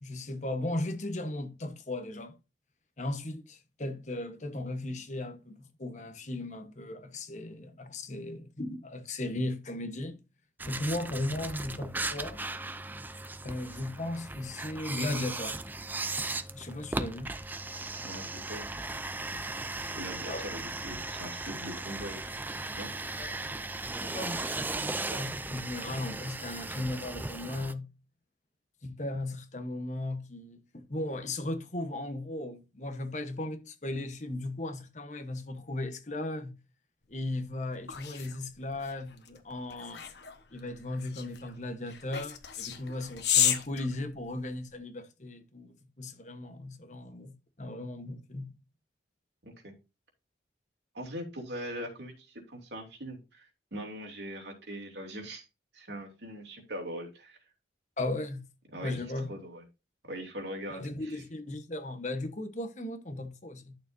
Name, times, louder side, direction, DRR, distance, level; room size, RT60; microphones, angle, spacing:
voice 1, 0.0-2.3 3.0-10.2 10.7-12.4 13.4-15.6 16.5-17.4 20.3-20.5 23.2-23.4 23.8-27.9 28.8-36.6 37.1-40.1 40.5-48.6 58.0-58.5 58.8-59.3 60.7-63.8, left 2 dB, 40° left, 1.2 m, -37 dB
sound 1, 10.6-27.7, right 2 dB, 10° right, 0.4 m, -37 dB
voice 2, 18.0-18.8 19.2-19.5 19.9-22.2 22.5-22.9 49.4-49.7 50.9-55.4 55.7-57.4 58.7-59.0 59.3-59.6 60.0-61.2, equal, 75° right, 3.0 m, -41 dB
sound 2, 37.2-44.7, left 9 dB, 70° left, 1.3 m, -33 dB
11.0 x 6.8 x 2.7 m
head